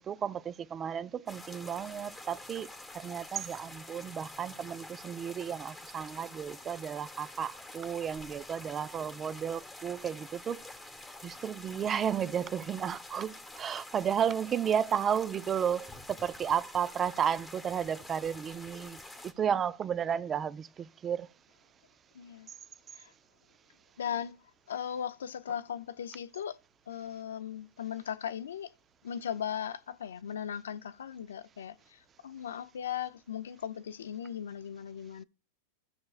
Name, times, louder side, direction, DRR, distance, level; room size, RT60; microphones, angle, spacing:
voice 1, 0.0-2.7 2.9-10.6 11.2-19.0 19.4-21.3, right 8 dB, 25° right, 0.4 m, -33 dB
sound 1, 1.3-19.3, left 2 dB, 10° left, 1.1 m, -48 dB
voice 2, 22.1-22.5 22.9-23.1 24.0-24.4 24.7-26.6 26.9-28.7 29.0-35.2, left 9 dB, 90° left, 0.5 m, -38 dB
16.0 x 6.3 x 2.4 m
hypercardioid pair, 125°, 0 cm